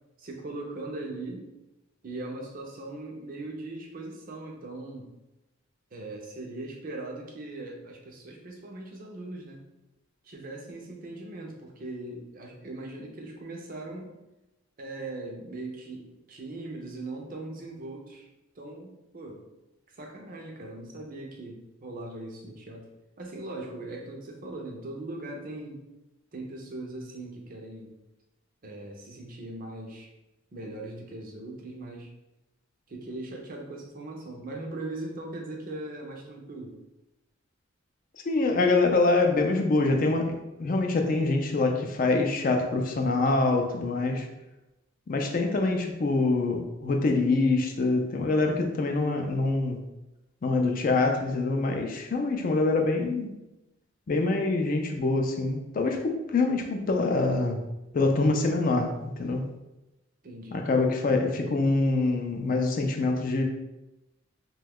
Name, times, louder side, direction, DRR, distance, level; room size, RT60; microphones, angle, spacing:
voice 1, 0.2-1.5 2.0-5.1 5.9-9.6 10.2-14.2 14.8-18.3 18.6-19.4 19.9-22.8 23.2-25.8 26.3-27.9 28.6-30.1 30.5-32.1 32.9-36.7 60.2-60.7, right 2 dB, 45° right, 1 dB, 0.5 m, -39 dB
voice 2, 38.3-44.3 45.1-49.8 50.4-53.3 54.1-57.6 57.9-59.4 60.5-63.4, left 3 dB, 40° left, 3 dB, 0.3 m, -25 dB
2.9 x 2.2 x 3.4 m, 0.95 s
head